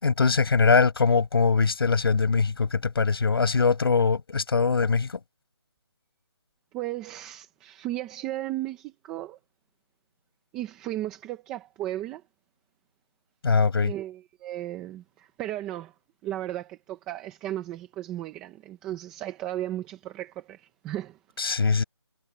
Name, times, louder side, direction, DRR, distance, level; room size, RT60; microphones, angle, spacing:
voice 1, 0.0-5.2 13.4-13.9 21.4-21.8, left 4 dB, 55° left, 5.9 m, -22 dB
voice 2, 6.7-9.4 10.5-12.2 13.8-15.9 16.2-21.2, right 14 dB, 5° right, 0.4 m, -35 dB
figure-of-eight pair, 170°, 15 cm